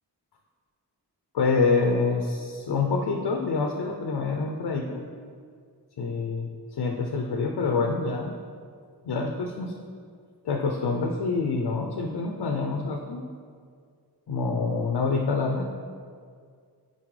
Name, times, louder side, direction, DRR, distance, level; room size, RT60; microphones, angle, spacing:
voice 1, 1.3-5.1 6.0-8.4 9.0-9.7 10.4-13.3 14.3-15.7, left 4 dB, 80° left, 2 dB, 0.5 m, -26 dB
8.6 x 4.0 x 3.2 m, 2.1 s
wide cardioid pair, 80°, 40 cm